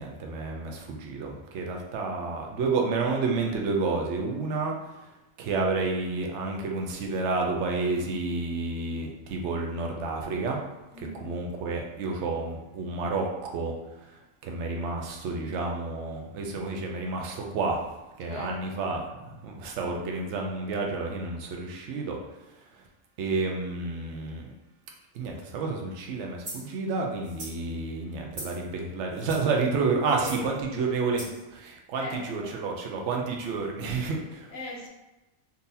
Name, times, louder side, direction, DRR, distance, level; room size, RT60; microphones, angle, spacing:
voice 1, 0.0-4.7 5.0-5.1 5.4-10.6 11.1-13.7 14.0-17.9 18.2-22.2 23.2-24.5 25.1-34.5, right 3 dB, 65° right, 1 dB, 0.9 m, -30 dB
voice 2, 10.9-11.3 18.3-18.7 20.6-20.9 30.1-31.3 32.0-32.6 34.5-34.9, left 1 dB, 65° left, -2 dB, 1.1 m, -40 dB
sound 1, 26.4-26.7 27.2-27.6 28.3-28.6 29.1-29.5 30.1-30.5 31.2-31.4, right 1 dB, 90° right, 2.1 m, -40 dB
3.8 x 2.8 x 2.7 m, 1.0 s
omnidirectional pair, 1.4 m